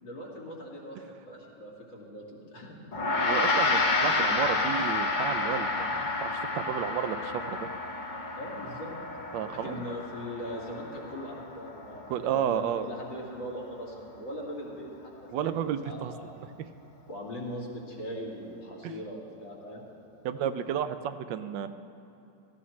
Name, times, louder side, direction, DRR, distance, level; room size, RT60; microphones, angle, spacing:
voice 1, 0.0-2.9 8.4-8.9 9.6-16.3 17.1-19.9, equal, 80° left, -4 dB, 2.8 m, -40 dB
Gong, 2.9-12.5, left 3 dB, 45° left, 0.6 m, -30 dB
voice 2, 3.2-7.7 9.3-10.0 12.1-12.9 15.3-16.1 18.8-18.9 20.2-21.7, right 9 dB, 80° right, 11 dB, 1.3 m, -32 dB
17.0 x 14.0 x 3.2 m, 2.7 s
omnidirectional pair, 2.0 m